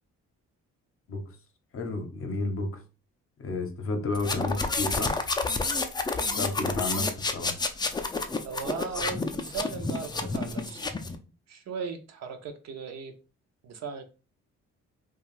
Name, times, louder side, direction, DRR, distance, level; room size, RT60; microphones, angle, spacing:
voice 1, 1.7-2.8 3.4-5.2 6.3-7.5, left 2 dB, 45° left, 5 dB, 0.7 m, -31 dB
sound 1, 4.1-11.2, left 3 dB, 15° left, 0.3 m, -30 dB
voice 2, 8.4-10.9 11.5-13.1 13.6-14.0, right 5 dB, 60° right, 7 dB, 0.6 m, -37 dB
2.4 x 2.3 x 3.1 m, 0.33 s
cardioid pair, 90°, 30 cm